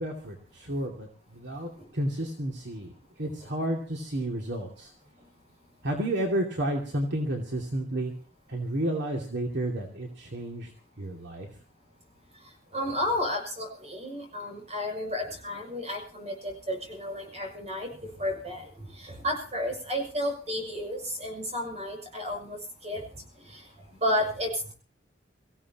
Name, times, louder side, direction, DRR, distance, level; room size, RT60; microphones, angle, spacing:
voice 1, 0.0-2.9 3.2-4.9 5.8-8.1 8.5-10.7 11.0-11.5, right 1 dB, 65° right, 1 dB, 2.6 m, -31 dB
voice 2, 12.7-17.9 18.2-18.7 19.0-22.6 22.8-23.0 23.5-23.6 24.0-24.7, left 1 dB, 35° right, 3 dB, 6.7 m, -32 dB
25.0 x 16.0 x 3.0 m, 0.41 s
head